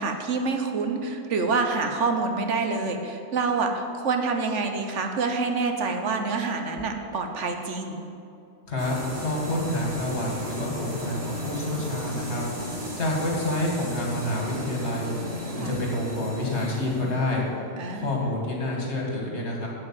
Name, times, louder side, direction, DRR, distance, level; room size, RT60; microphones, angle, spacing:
voice 1, 0.0-8.0 15.6-15.7 17.8-18.3, right 4 dB, 75° right, 5 dB, 1.3 m, -27 dB
voice 2, 8.7-12.4 13.0-15.1 15.6-17.4 17.9-19.7, left 1 dB, 65° left, -2 dB, 2.3 m, -28 dB
sound 1, 8.8-18.4, equal, 55° right, 2.6 m, -35 dB
8.7 x 7.9 x 7.4 m, 2.5 s
omnidirectional pair, 1.3 m